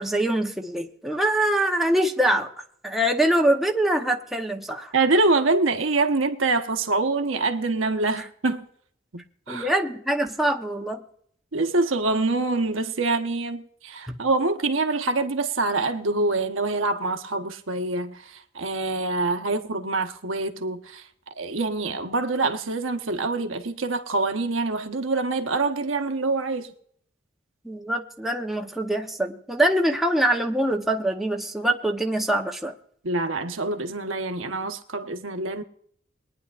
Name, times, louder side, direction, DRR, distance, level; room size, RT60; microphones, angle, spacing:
voice 1, 0.0-2.5 2.8-4.9 9.5-11.0 14.1-14.2 27.6-32.7, right 1 dB, ahead, 0.9 m, -24 dB
voice 2, 4.9-8.6 9.1-9.7 11.5-21.0 21.4-26.7 33.0-35.6, right 3 dB, 90° right, 1.1 m, -25 dB
22.0 x 10.0 x 2.5 m
head